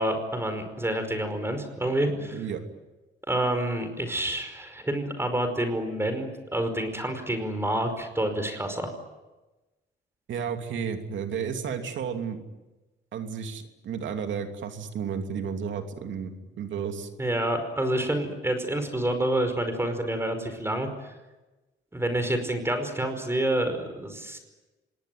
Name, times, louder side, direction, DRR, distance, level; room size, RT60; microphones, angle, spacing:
voice 1, 0.0-2.4 3.3-8.9 17.2-21.1 21.9-24.4, right 1 dB, 10° right, 7 dB, 5.1 m, -28 dB
voice 2, 10.3-12.4 13.1-17.1, right 7 dB, 70° right, 5 dB, 2.9 m, -32 dB
26.5 x 19.0 x 9.4 m, 1.1 s
cardioid pair, 90°, 20 cm